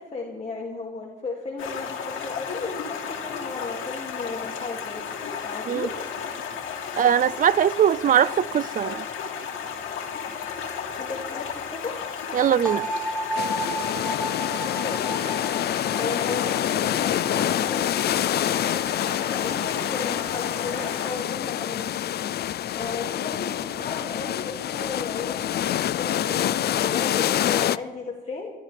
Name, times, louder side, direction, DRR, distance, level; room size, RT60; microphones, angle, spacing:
voice 1, 0.0-5.0 5.4-5.9 11.0-12.0 14.6-15.1 16.0-22.1 22.7-28.5, left 4 dB, 35° left, 2.4 m, -35 dB
Stream, 1.6-21.2, left 7 dB, 80° left, 2.6 m, -34 dB
voice 2, 7.0-9.1 12.3-12.9, right 9 dB, 45° right, 0.5 m, -21 dB
sound 1, 12.7-18.5, right 2 dB, 5° left, 1.8 m, -33 dB
sound 2, 13.4-27.8, left 11 dB, 55° left, 0.4 m, -27 dB
25.5 x 13.0 x 3.4 m
cardioid pair, 90°, 20 cm